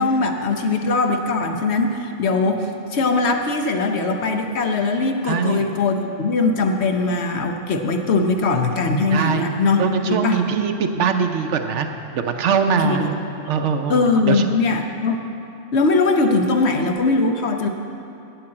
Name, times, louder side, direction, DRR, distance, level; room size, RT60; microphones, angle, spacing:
voice 1, 0.0-10.4 12.8-13.1 13.9-15.2 15.7-17.7, left 3 dB, 60° left, 4 dB, 1.0 m, -20 dB
voice 2, 5.2-5.7 9.1-9.4 9.8-11.9 12.1-13.0 13.5-14.4, right 6 dB, 70° right, 6 dB, 1.0 m, -22 dB
7.9 x 7.8 x 8.7 m, 2.7 s
omnidirectional pair, 1.3 m